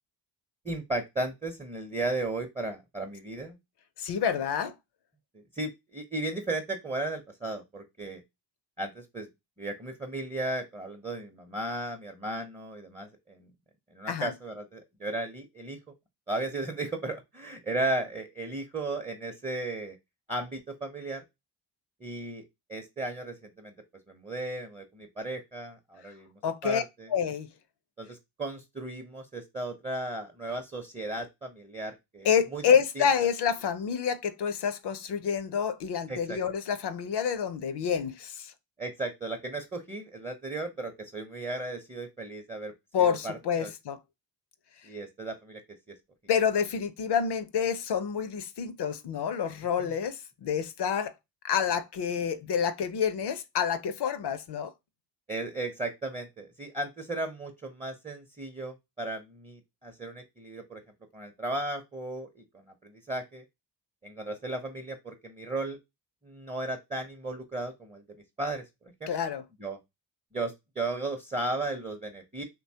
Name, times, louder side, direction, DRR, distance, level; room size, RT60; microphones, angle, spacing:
voice 1, 0.6-3.6 5.3-8.2 8.8-9.3 9.6-13.5 13.9-15.8 16.3-20.0 20.3-21.2 22.0-23.7 24.1-27.1 28.0-32.6 33.0-33.1 36.1-36.4 38.8-42.7 43.0-43.7 44.8-45.6 49.8-49.9 55.3-60.8 61.1-62.4 62.8-63.4 64.0-65.8 66.2-68.0 68.4-68.6 69.0-69.1 69.6-69.8 70.3-72.4, right 2 dB, 15° right, 0.7 m, -35 dB
voice 2, 4.0-4.7 14.1-14.3 26.4-26.8 27.1-27.5 32.2-38.5 42.9-44.0 46.3-51.1 51.4-54.7 69.1-69.4, left 7 dB, 55° left, 0.6 m, -28 dB
2.9 x 2.3 x 2.7 m
supercardioid pair, 45°, 48 cm